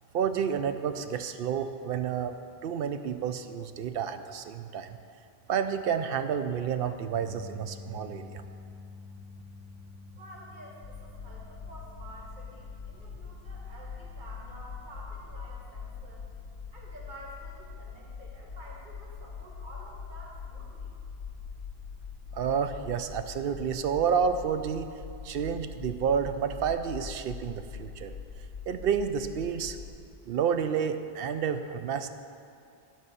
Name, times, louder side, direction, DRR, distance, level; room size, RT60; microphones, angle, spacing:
voice 1, 0.1-2.3 2.6-5.0 5.5-8.4 22.3-24.9 25.2-28.1 28.7-29.8 30.3-32.1, right 7 dB, 65° right, 9 dB, 0.7 m, -30 dB
sound 1, 7.1-19.4 19.7-20.0 22.1-22.2, left 4 dB, 5° right, 2.0 m, -51 dB
voice 2, 10.2-16.2 16.7-20.9, right 1 dB, 50° right, -4 dB, 1.7 m, -49 dB
sound 2, 10.8-30.1, left 6 dB, 65° left, 1.1 m, -43 dB
12.5 x 4.6 x 6.7 m, 2.4 s
omnidirectional pair, 1.1 m